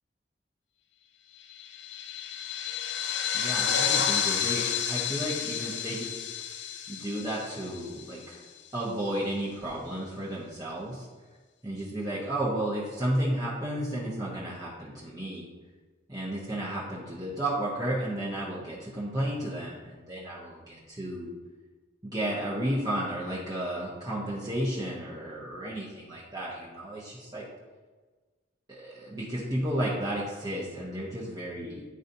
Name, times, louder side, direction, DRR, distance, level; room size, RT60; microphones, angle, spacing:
sound 1, 1.5-8.4, left 8 dB, 75° left, 0.5 m, -31 dB
voice 1, 3.3-6.3 6.9-8.4 8.7-11.1 11.6-15.4 16.1-21.3 22.0-27.4 28.7-31.8, right 1 dB, 20° right, -7 dB, 0.9 m, -33 dB
10.5 x 4.0 x 2.7 m, 1.3 s
head